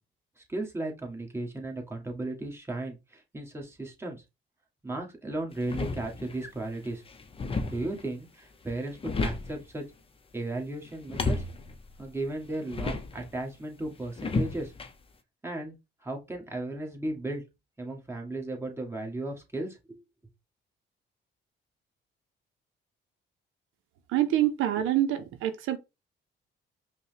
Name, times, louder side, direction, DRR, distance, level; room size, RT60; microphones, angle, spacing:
voice 1, 0.4-4.2 4.8-7.0 7.6-9.8 10.3-11.4 12.0-14.7 15.4-15.8 16.0-17.4 17.8-20.0, right 2 dB, 10° right, 1.5 m, -35 dB
sound 1, 5.5-6.5 6.8-8.1 8.7-9.7 10.9-13.3 14.2-14.9, left 3 dB, 30° left, 0.6 m, -33 dB
voice 2, 24.1-25.8, right 12 dB, 90° right, 0.6 m, -26 dB
5.2 x 2.2 x 3.3 m
cardioid pair, 90°, 20 cm